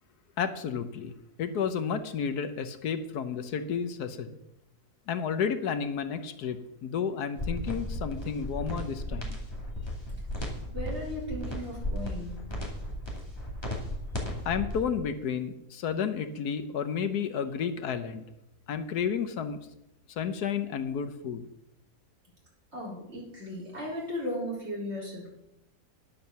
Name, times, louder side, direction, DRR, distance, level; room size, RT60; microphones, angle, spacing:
voice 1, 0.4-1.1 1.4-4.4 5.1-9.4 14.4-18.2 18.7-19.6 20.1-21.5, left 7 dB, 80° left, 9 dB, 1.4 m, -31 dB
sound 1, 7.4-14.8, left 1 dB, 15° left, 2.6 m, -35 dB
voice 2, 10.7-12.6 22.7-25.3, left 1 dB, 40° right, -4 dB, 4.5 m, -36 dB
10.5 x 7.5 x 6.9 m, 0.86 s
omnidirectional pair, 1.7 m